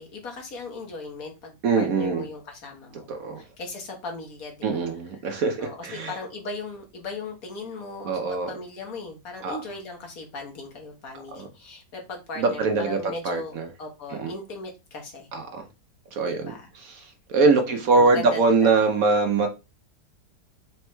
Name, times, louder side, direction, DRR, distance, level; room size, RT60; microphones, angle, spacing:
voice 1, 0.0-3.1 3.4-4.8 5.2-5.3 5.6-15.3 16.2-16.7 17.5-18.9, left 3 dB, 60° left, 1.5 m, -38 dB
voice 2, 1.6-2.2 3.1-3.4 4.6-6.1 8.0-8.5 9.4-9.6 11.4-11.5 12.4-13.7 14.2-14.3 15.3-15.6 16.1-16.5 16.8-16.9 17.3-19.5, right 4 dB, 65° right, 1.0 m, -22 dB
4.5 x 4.3 x 2.2 m
omnidirectional pair, 1.8 m